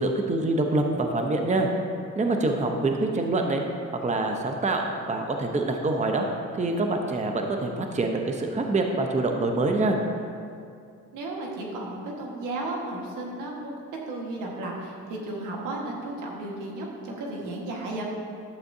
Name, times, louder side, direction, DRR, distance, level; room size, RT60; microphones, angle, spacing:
voice 1, 0.0-1.7 2.2-3.6 4.0-4.8 5.1-6.2 6.6-10.0, right 2 dB, 25° right, 3 dB, 0.7 m, -25 dB
voice 2, 11.1-13.8 14.1-18.0, right 2 dB, 85° right, -2 dB, 1.6 m, -34 dB
11.5 x 7.7 x 2.7 m, 2.4 s
cardioid pair, 90°, 30 cm